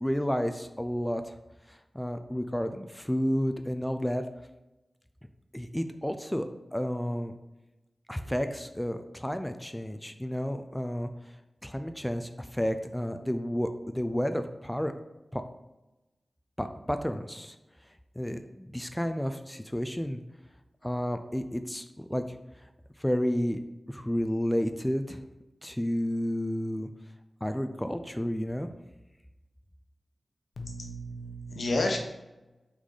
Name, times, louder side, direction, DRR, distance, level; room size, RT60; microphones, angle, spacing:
voice 1, 0.0-1.3 1.7-4.3 5.5-7.3 8.1-11.1 11.6-14.9 15.3-15.4 16.6-17.6 18.2-20.2 20.8-22.2 23.0-23.6 23.9-25.2 25.6-26.9 27.4-28.7, equal, 5° left, 8 dB, 0.4 m, -31 dB
voice 2, 30.6-32.0, left 2 dB, 75° left, 3 dB, 0.9 m, -31 dB
6.0 x 4.1 x 3.8 m, 1.0 s
wide cardioid pair, 85°, 0 cm